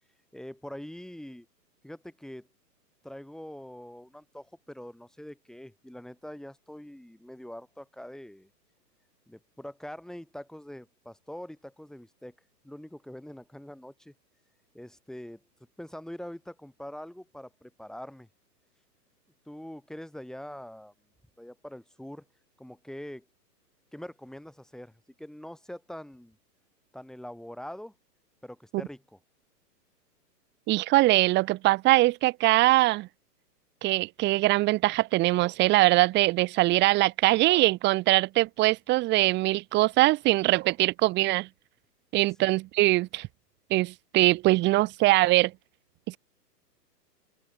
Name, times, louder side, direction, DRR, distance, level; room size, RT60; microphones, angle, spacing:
voice 1, 0.3-1.5 1.8-2.5 3.0-8.5 9.3-12.3 12.6-14.1 14.7-15.4 15.8-18.3 19.5-20.9 21.4-22.2 22.6-23.3 23.9-24.9 25.2-26.4 26.9-27.9 28.4-29.2, left 1 dB, ahead, 6.2 m, -43 dB
voice 2, 30.7-33.1 33.8-41.5 42.1-43.3 43.7-45.5 46.1-46.2, right 19 dB, 20° right, 1.7 m, -22 dB
hypercardioid pair, 145°, 50 cm